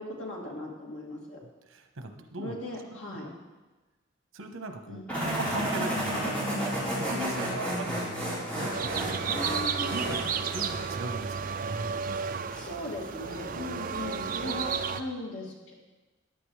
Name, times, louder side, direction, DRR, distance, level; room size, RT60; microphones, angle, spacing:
voice 1, 0.0-1.4 2.4-3.3 4.9-5.1 9.2-9.9 12.5-15.7, left 2 dB, 70° left, -3 dB, 2.8 m, -38 dB
voice 2, 1.7-2.6 3.1-3.2 4.3-9.4 9.9-12.2 14.4-14.6, right 1 dB, 90° right, 6 dB, 1.1 m, -39 dB
sound 1, 5.1-10.9, right 1 dB, 5° left, 4.2 m, -32 dB
sound 2, 8.7-15.0, right 6 dB, 45° right, 0.5 m, -32 dB
14.5 x 10.0 x 3.3 m, 1.2 s
head